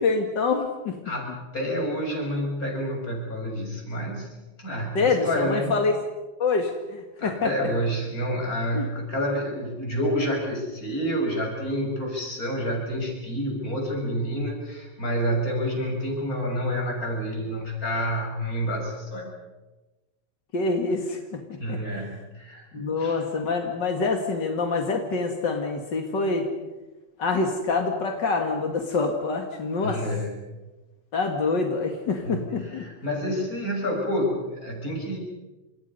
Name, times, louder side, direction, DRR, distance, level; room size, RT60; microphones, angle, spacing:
voice 1, 0.0-1.0 4.9-5.9 6.4-7.5 8.7-8.9 20.5-21.2 21.7-21.8 22.7-26.5 27.2-30.0 31.1-32.8, left 4 dB, 40° left, 3 dB, 1.8 m, -26 dB
voice 2, 1.1-4.3 4.6-5.7 7.2-19.3 21.6-23.2 29.8-30.4 32.2-35.2, equal, 20° left, 1 dB, 7.0 m, -29 dB
30.0 x 27.5 x 5.5 m, 1.1 s
omnidirectional pair, 4.6 m